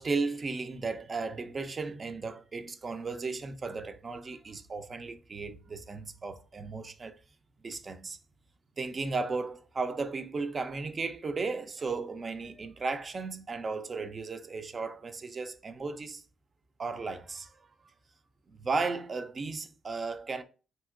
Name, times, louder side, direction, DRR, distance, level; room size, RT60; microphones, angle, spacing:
voice 1, 0.0-7.2 7.6-8.2 8.8-16.2 16.8-17.5 18.5-20.4, right 4 dB, 45° right, 0.4 m, -35 dB
2.8 x 2.7 x 2.4 m
supercardioid pair, 60°, 0 cm